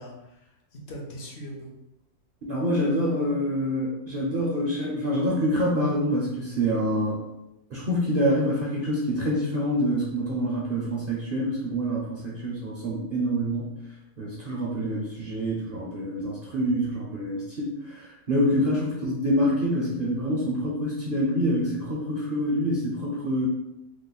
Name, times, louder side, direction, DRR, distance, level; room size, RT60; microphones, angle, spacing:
voice 1, 0.0-1.7 14.8-15.0 18.7-18.8, equal, 60° left, -1 dB, 0.9 m, -41 dB
voice 2, 2.4-7.2 7.7-13.7 14.2-23.5, equal, 55° right, -4 dB, 0.6 m, -26 dB
3.1 x 2.0 x 3.8 m, 0.91 s
omnidirectional pair, 1.4 m